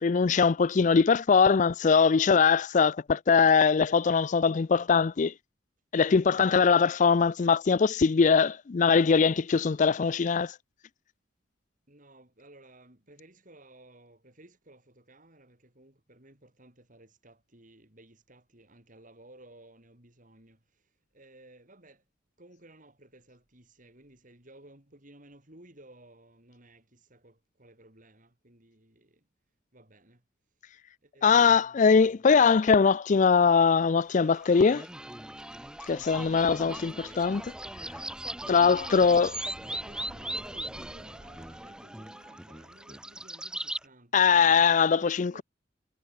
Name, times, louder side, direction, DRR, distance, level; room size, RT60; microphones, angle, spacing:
voice 1, 0.0-5.3 5.9-10.5 31.2-34.8 35.9-37.4 38.5-39.3 44.1-45.4, left 5 dB, 40° left, 0.4 m, -22 dB
voice 2, 11.9-22.1 22.4-29.3 29.7-30.2 30.7-32.7 36.8-37.3 38.8-44.3 44.9-45.4, right 1 dB, 45° right, 5.4 m, -56 dB
sound 1, 34.2-43.8, right 1 dB, 5° right, 0.6 m, -39 dB
head